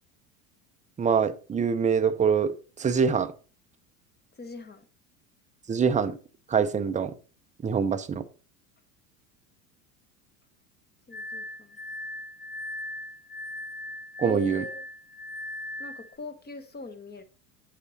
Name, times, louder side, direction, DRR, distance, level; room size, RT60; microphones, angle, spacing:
voice 1, 1.0-3.3 5.7-6.2 6.5-7.1 7.6-8.2 14.2-14.6, right 6 dB, 15° right, 0.6 m, -24 dB
voice 2, 4.4-4.8 11.1-11.8 14.2-14.8 15.8-17.2, left 2 dB, 20° left, 1.3 m, -41 dB
Glass, 11.1-16.1, left 1 dB, ahead, 1.4 m, -39 dB
8.1 x 5.1 x 4.1 m
hypercardioid pair, 85°, 47 cm